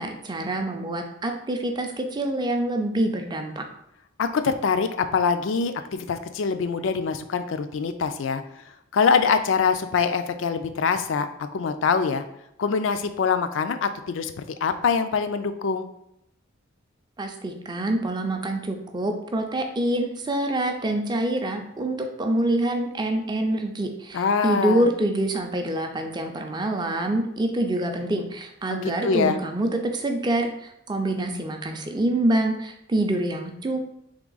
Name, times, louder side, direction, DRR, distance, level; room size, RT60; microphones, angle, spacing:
voice 1, 0.0-3.7 17.2-34.0, right 1 dB, 20° right, 4 dB, 0.4 m, -26 dB
voice 2, 4.2-8.4 8.9-12.2 12.6-14.3 14.6-15.9 24.1-24.9 28.7-29.4, left 5 dB, 65° left, 10 dB, 0.4 m, -24 dB
3.6 x 3.3 x 3.8 m, 0.78 s
head